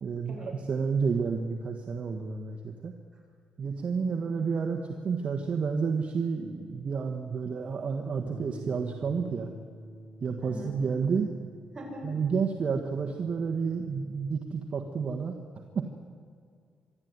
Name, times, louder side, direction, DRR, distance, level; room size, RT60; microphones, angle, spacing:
voice 1, 0.0-2.9 3.6-9.5 10.2-11.3 12.0-16.0, right 5 dB, 45° right, 3 dB, 1.5 m, -30 dB
voice 2, 4.1-4.5 10.4-10.7 11.7-12.1, equal, 20° right, -1 dB, 6.9 m, -42 dB
Bass guitar, 8.3-14.5, right 1 dB, 10° left, 1.2 m, -49 dB
25.0 x 12.5 x 9.5 m, 2.1 s
cardioid pair, 105°, 3 cm